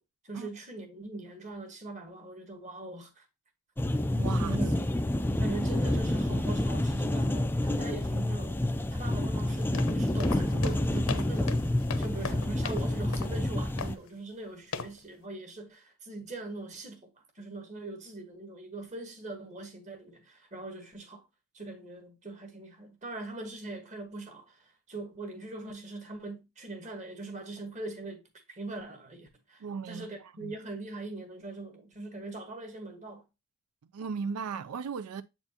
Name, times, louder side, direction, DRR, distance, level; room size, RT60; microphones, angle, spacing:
voice 1, 0.2-3.2 4.4-4.8 5.4-8.6 8.9-17.1 17.3-21.2 21.5-28.2 28.5-33.2, right 2 dB, 35° right, 1.4 m, -41 dB
sound 1, 3.8-14.0, left 1 dB, 10° left, 0.3 m, -28 dB
voice 2, 4.2-4.6 29.6-30.5 33.9-35.2, right 5 dB, 90° right, 0.4 m, -36 dB
sound 2, 9.5-12.9 13.1-13.4 13.8-14.1 14.7-15.0, left 5 dB, 70° left, 0.7 m, -38 dB
7.7 x 4.5 x 2.8 m
head